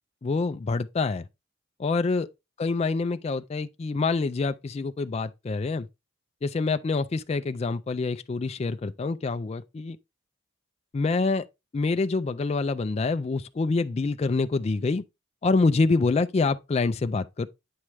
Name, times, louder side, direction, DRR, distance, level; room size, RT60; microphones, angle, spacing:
voice 1, 0.2-1.3 1.8-2.3 2.6-5.9 6.4-10.0 10.9-11.4 11.7-15.0 15.4-17.5, left 3 dB, 30° left, 0.3 m, -26 dB
8.6 x 4.8 x 3.1 m
head